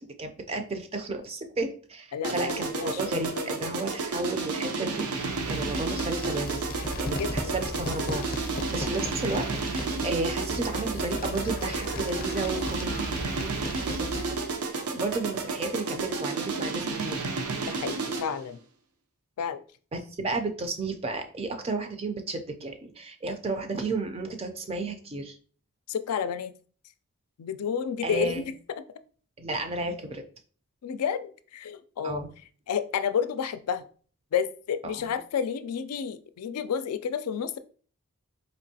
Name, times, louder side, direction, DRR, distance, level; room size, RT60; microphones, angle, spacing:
voice 1, 0.2-6.6 7.0-8.2 8.7-12.9 13.3-13.5 13.8-14.3 14.7-17.3 19.9-25.3 28.0-28.4 29.4-30.2 32.0-32.3 34.8-35.0, right 2 dB, 25° right, 6 dB, 0.4 m, -33 dB
voice 2, 2.1-3.0 3.4-3.5 7.2-7.6 17.7-18.6 19.4-19.6 25.9-26.5 27.4-28.5 30.8-32.2 32.7-33.8 34.3-37.6, left 7 dB, 90° left, 11 dB, 0.4 m, -30 dB
sound 1, 2.2-18.4, right 4 dB, 85° right, 0.6 m, -32 dB
sound 2, 5.2-14.6, left 1 dB, 40° left, 0.5 m, -36 dB
4.3 x 3.0 x 2.7 m, 0.43 s
head